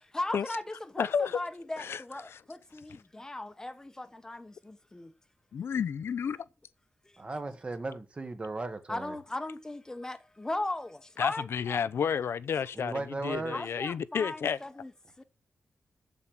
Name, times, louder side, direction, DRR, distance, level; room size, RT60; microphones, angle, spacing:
voice 1, 0.1-5.1 8.9-11.9 13.5-14.9 15.2-15.3, left 2 dB, 15° left, 1.1 m, -38 dB
voice 2, 1.0-1.4 1.8-2.4 5.5-6.4 11.2-14.6, left 7 dB, 75° left, 0.7 m, -31 dB
voice 3, 7.2-9.2 12.7-13.6, right 3 dB, 25° right, 1.5 m, -36 dB
7.8 x 7.6 x 7.4 m
wide cardioid pair, 155°, 4 cm